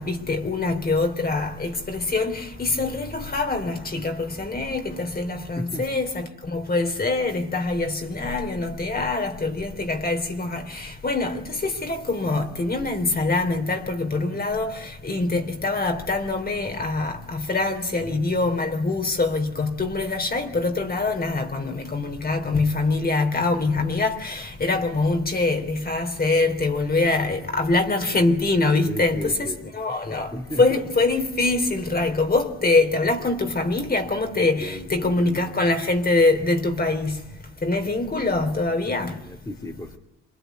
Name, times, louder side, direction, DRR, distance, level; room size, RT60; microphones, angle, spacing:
voice 1, 0.0-37.2 37.6-39.2, left 3 dB, 30° left, 3.6 m, -24 dB
voice 2, 28.8-30.0 30.3-30.8 34.4-35.5 39.1-40.0, left 1 dB, 10° left, 2.9 m, -35 dB
27.5 x 21.5 x 9.5 m
cardioid pair, 90°, 30 cm